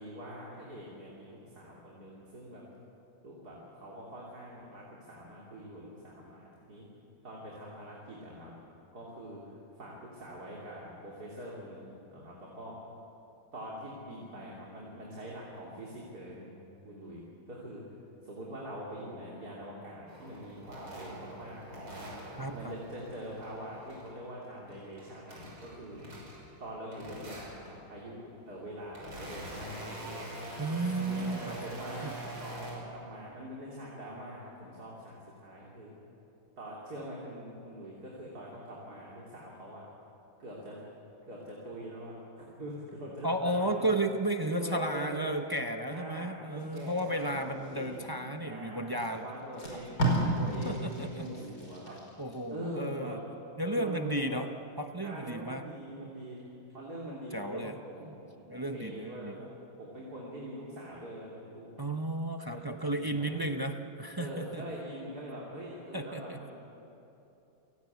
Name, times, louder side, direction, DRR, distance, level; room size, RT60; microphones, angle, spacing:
voice 1, 0.0-2.6 3.2-6.9 7.2-8.5 8.9-12.7 13.5-17.2 17.5-18.0 18.2-22.0 22.5-26.2 26.6-30.3 31.0-35.9 36.6-39.9 40.4-40.8 41.3-43.9 44.5-45.4 45.9-48.1 48.4-50.1 50.4-52.0 52.5-53.2 53.6-54.4 55.0-56.4 56.7-59.5 59.8-61.7 62.5-63.5 64.2-66.5, equal, 50° right, -4 dB, 3.9 m, -44 dB
sound 1, 20.1-24.2 24.5-26.6 26.9-27.8 28.4-32.7, right 1 dB, 85° right, 7.2 m, -44 dB
voice 2, 22.4-22.8 30.6-31.6 32.0-32.2 43.2-49.2 49.7-49.8 50.6-51.3 52.2-53.2 53.6-54.5 54.8-55.6 56.0-56.1 57.3-57.8 58.0-58.2 58.5-59.4 61.8-64.7 65.9-66.5, right 1 dB, 25° right, 5 dB, 0.4 m, -33 dB
Packing tape duct tape, 46.6-48.3 49.0-49.1 49.4-52.4 52.8-53.0, right 1 dB, 50° left, 6.0 m, -34 dB
28.5 x 18.5 x 8.3 m, 3.0 s
omnidirectional pair, 2.1 m